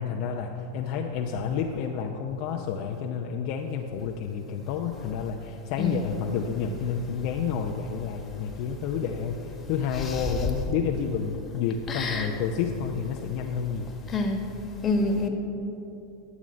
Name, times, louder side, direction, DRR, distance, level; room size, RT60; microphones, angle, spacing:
voice 1, 0.0-14.0, left 7 dB, 55° left, 2 dB, 0.6 m, -30 dB
voice 2, 5.8-6.1 10.0-10.3 11.9-12.3 14.1-14.4 14.8-15.3, left 2 dB, 25° left, 3 dB, 1.4 m, -27 dB
11.0 x 7.1 x 5.1 m, 2.9 s
hypercardioid pair, 100°, 0 cm